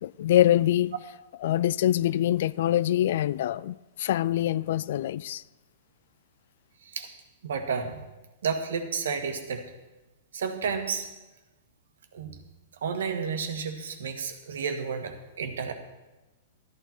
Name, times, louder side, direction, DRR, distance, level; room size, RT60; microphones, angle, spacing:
voice 1, 0.0-1.0 1.4-5.4, left 12 dB, 60° left, 0.3 m, -24 dB
voice 2, 7.4-8.0 8.4-9.6 10.3-11.1 12.1-12.4 12.8-15.7, right 6 dB, 90° right, 1.7 m, -31 dB
13.0 x 11.5 x 4.4 m
hypercardioid pair, 160°, 0 cm